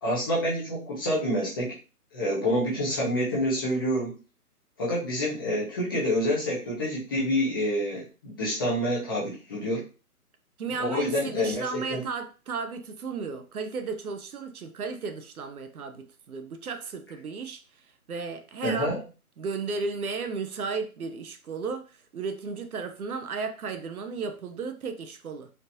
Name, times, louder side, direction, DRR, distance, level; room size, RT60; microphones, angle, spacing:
voice 1, 0.0-1.8 2.1-4.1 4.8-9.9 10.8-12.0 18.6-19.0, equal, 15° left, 0.7 m, -27 dB
voice 2, 10.6-17.6 18.1-19.0 19.4-21.9 22.1-25.5, right 4 dB, 70° right, 0.8 m, -34 dB
4.4 x 2.8 x 2.6 m
hypercardioid pair, 155°, 46 cm